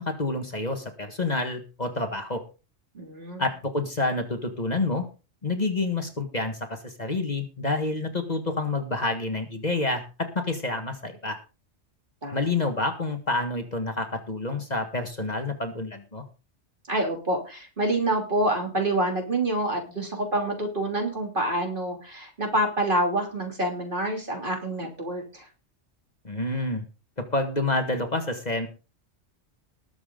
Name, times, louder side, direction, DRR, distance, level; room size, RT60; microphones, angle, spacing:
voice 1, 0.0-2.4 3.4-5.1 5.4-11.4 12.3-16.2 26.2-26.8 27.2-28.7, left 2 dB, 35° left, 6 dB, 1.7 m, -28 dB
voice 2, 2.9-3.5 12.2-12.5 16.9-25.5, right 1 dB, 45° right, 2 dB, 3.4 m, -27 dB
20.0 x 7.2 x 3.8 m, 0.32 s
omnidirectional pair, 1.2 m